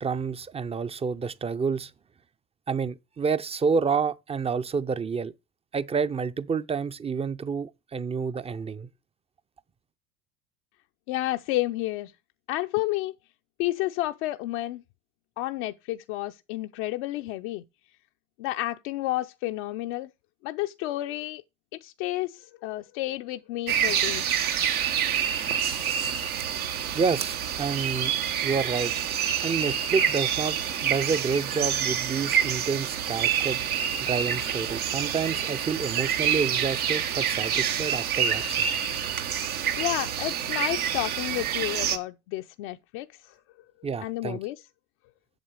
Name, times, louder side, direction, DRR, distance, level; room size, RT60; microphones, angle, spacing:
voice 1, 0.0-1.9 2.7-5.3 5.7-8.9 26.9-28.1 28.4-28.9 29.4-33.6 34.0-38.7 43.8-44.4, right 5 dB, 15° right, 0.5 m, -29 dB
voice 2, 11.1-12.1 12.5-13.1 13.6-14.8 15.4-17.6 18.4-20.1 20.4-21.4 21.8-24.3 39.8-43.4 44.0-44.6, left 17 dB, 55° left, 0.6 m, -31 dB
sound 1, 23.7-42.0, right 9 dB, 85° right, 1.3 m, -27 dB
8.2 x 7.2 x 4.7 m
hypercardioid pair, 80°, 42 cm